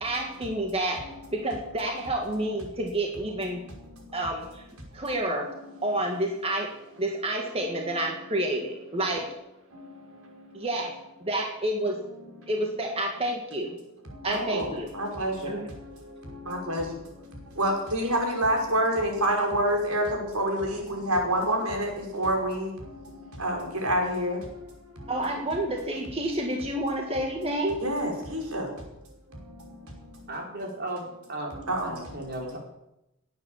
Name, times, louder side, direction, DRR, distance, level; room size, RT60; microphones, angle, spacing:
voice 1, 0.0-3.6 4.1-4.6 4.9-5.5 5.8-6.7 7.0-9.3 10.5-10.9 11.2-12.0 12.5-13.8 14.2-14.9 15.5-15.7 25.1-27.8, right 1 dB, 25° right, 1 dB, 1.8 m, -29 dB
voice 2, 14.3-15.5 16.5-16.8 17.6-20.0 20.3-22.7 23.4-24.4 27.8-28.7 31.7-31.9, right 1 dB, 80° right, 1 dB, 5.3 m, -27 dB
voice 3, 30.3-32.6, right 1 dB, 50° right, 0 dB, 4.4 m, -36 dB
19.0 x 9.5 x 7.3 m, 0.89 s
head